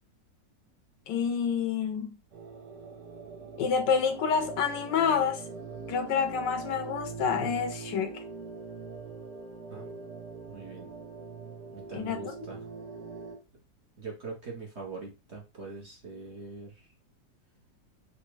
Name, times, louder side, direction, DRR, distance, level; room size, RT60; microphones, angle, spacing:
voice 1, 1.1-2.2 3.6-5.4 5.9-8.2 11.9-12.3, left 6 dB, 75° left, 1.2 m, -28 dB
sound 1, 2.3-13.4, right 5 dB, 70° right, 1.7 m, -43 dB
voice 2, 10.5-10.9 11.7-12.6 14.0-16.9, right 3 dB, 45° right, 0.9 m, -42 dB
4.0 x 2.4 x 4.6 m
omnidirectional pair, 2.0 m